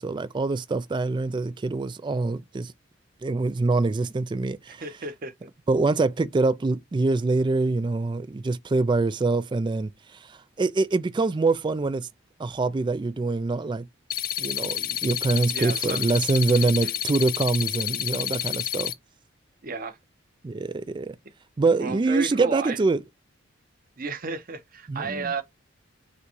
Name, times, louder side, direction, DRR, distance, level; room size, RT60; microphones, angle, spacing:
voice 1, 0.0-2.7 3.2-4.8 5.7-9.9 10.2-12.1 12.4-13.8 14.4-18.9 20.4-21.2 21.6-23.0 24.9-25.3, right 3 dB, 25° right, 0.3 m, -25 dB
voice 2, 4.7-5.3 15.5-16.0 16.5-17.0 19.6-20.0 21.8-22.8 24.0-25.4, right 4 dB, 45° right, 0.9 m, -33 dB
sound 1, 14.1-18.9, left 12 dB, 45° left, 0.4 m, -29 dB
6.6 x 2.3 x 3.0 m
head